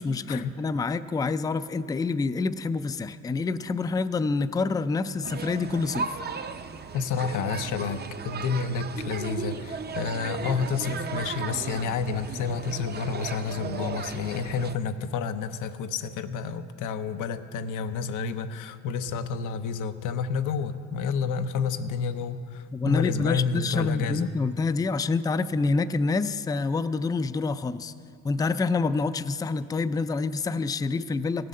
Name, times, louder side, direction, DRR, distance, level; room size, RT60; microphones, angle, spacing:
voice 1, 0.0-6.1 22.7-27.9 28.2-31.5, left 4 dB, 15° left, 13 dB, 0.3 m, -27 dB
sound 1, 5.2-14.8, right 5 dB, 35° right, 0.6 m, -36 dB
voice 2, 6.9-24.3, left 5 dB, 90° left, 9 dB, 0.7 m, -30 dB
16.0 x 7.7 x 6.5 m, 2.3 s
cardioid pair, 90°, 30 cm